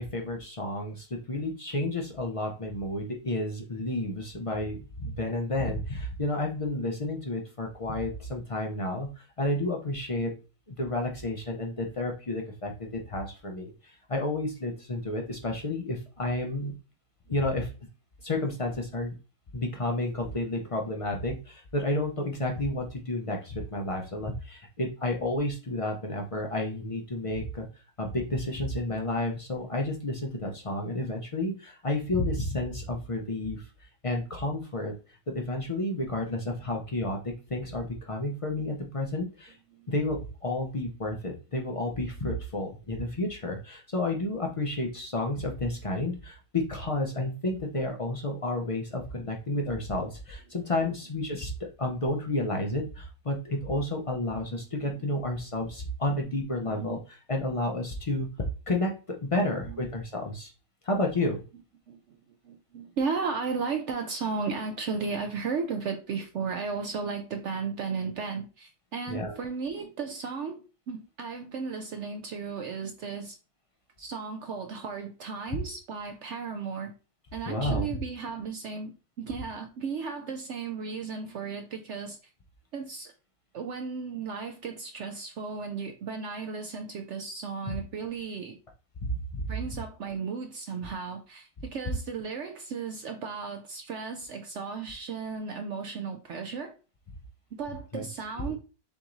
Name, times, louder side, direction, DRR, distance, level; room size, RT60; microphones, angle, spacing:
voice 1, 0.0-9.1 9.4-10.3 10.7-16.7 17.3-17.7 18.2-19.1 19.5-27.7 28.0-33.7 34.0-34.9 35.3-39.6 39.9-51.5 51.8-58.3 58.7-58.9 59.3-60.5 60.8-61.4 69.1-69.4 77.5-77.9 87.7-87.8 89.0-89.5 97.9-98.1, left 1 dB, 65° left, 0.3 m, -31 dB
voice 2, 54.8-55.2 56.6-57.0 59.4-59.8 61.9-62.2 62.4-73.4 74.0-76.9 77.3-82.3 82.7-83.1 83.5-88.6 89.5-96.8 97.5-98.6, right 5 dB, 65° right, 0.7 m, -35 dB
6.9 x 3.0 x 2.5 m
omnidirectional pair, 1.6 m